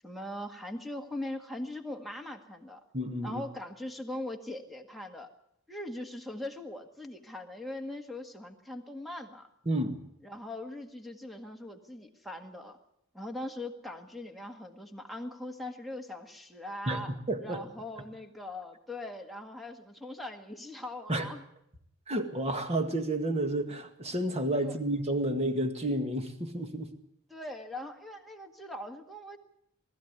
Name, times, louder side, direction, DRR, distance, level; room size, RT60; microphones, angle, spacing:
voice 1, 0.0-2.8 3.2-5.3 5.7-9.5 10.2-12.8 13.1-17.1 17.4-21.4 24.6-24.8 27.3-29.4, left 1 dB, ahead, 5 dB, 1.8 m, -41 dB
voice 2, 2.9-3.4 9.7-10.0 16.9-17.6 21.1-21.3 22.1-26.9, right 1 dB, 30° right, 6 dB, 2.0 m, -31 dB
20.0 x 14.0 x 9.6 m, 0.76 s
head